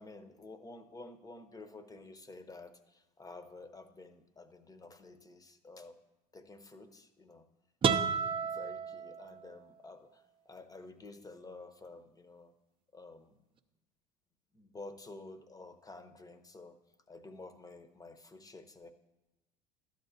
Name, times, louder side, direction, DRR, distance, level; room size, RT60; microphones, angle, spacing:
voice 1, 0.0-6.0 6.3-7.4 8.5-12.5 12.9-13.4 14.5-16.8 17.1-18.9, left 2 dB, 15° left, 9 dB, 0.9 m, -51 dB
sound 1, 7.8-9.7, right 6 dB, 25° right, 0.6 m, -32 dB
12.5 x 8.0 x 2.7 m, 1.0 s
hypercardioid pair, 80°, 21 cm